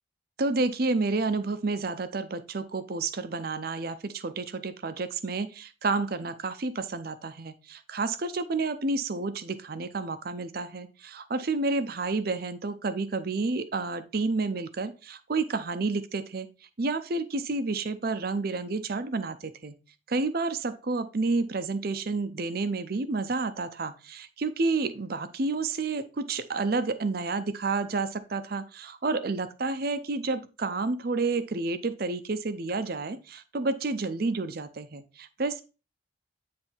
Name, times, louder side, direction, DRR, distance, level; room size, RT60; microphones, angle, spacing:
voice 1, 0.4-16.5 16.8-19.7 20.1-35.6, right 3 dB, 50° right, 11 dB, 0.6 m, -30 dB
9.6 x 3.4 x 4.4 m, 0.32 s
head